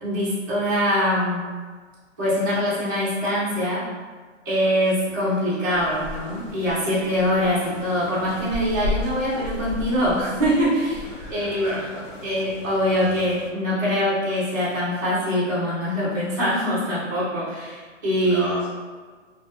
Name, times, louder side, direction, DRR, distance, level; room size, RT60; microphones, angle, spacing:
voice 1, 0.0-1.5 2.2-3.9 4.4-11.8 12.2-18.6, equal, 15° right, -13 dB, 0.3 m, -23 dB
sound 1, 5.7-13.5, left 2 dB, 75° left, 0.5 m, -35 dB
voice 2, 11.1-12.2 18.2-18.7, equal, ahead, -9 dB, 0.7 m, -33 dB
2.3 x 2.1 x 2.7 m, 1.5 s
hypercardioid pair, 155°, 38 cm